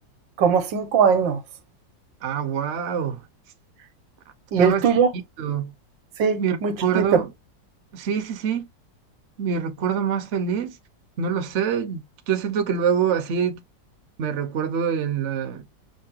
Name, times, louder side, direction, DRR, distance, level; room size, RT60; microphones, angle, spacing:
voice 1, 0.4-1.4 4.5-5.1 6.2-7.2, right 6 dB, 80° right, 1.6 m, -20 dB
voice 2, 2.2-3.2 4.6-4.9 5.4-5.7 6.4-7.3 7.9-8.7 9.4-10.8 11.2-13.6 14.2-15.8, right 7 dB, 50° right, 1.0 m, -25 dB
5.7 x 2.7 x 2.8 m
omnidirectional pair, 2.0 m